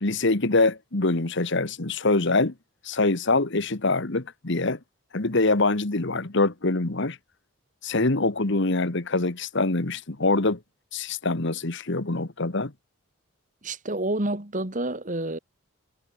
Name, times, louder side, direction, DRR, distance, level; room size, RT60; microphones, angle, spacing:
voice 1, 0.0-2.5 2.8-4.8 5.1-7.2 7.8-10.6 10.9-12.7, left 2 dB, 55° left, 1.5 m, -24 dB
voice 2, 13.6-15.4, right 1 dB, 35° right, 2.5 m, -29 dB
head